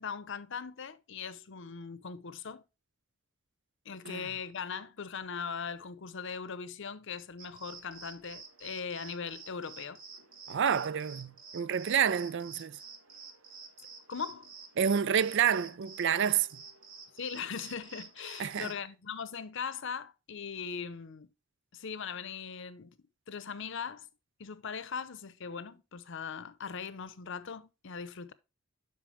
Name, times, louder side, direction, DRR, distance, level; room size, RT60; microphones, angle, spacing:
voice 1, 0.0-2.6 3.8-10.0 14.1-14.5 17.1-21.3 21.7-23.0 23.3-24.1 24.4-28.3, left 6 dB, 65° left, 0.7 m, -40 dB
sound 1, 7.4-18.8, right 5 dB, 85° right, 1.8 m, -50 dB
voice 2, 10.5-12.8 14.8-16.5 18.4-18.7, right 8 dB, 60° right, 0.4 m, -28 dB
8.5 x 5.9 x 3.2 m
head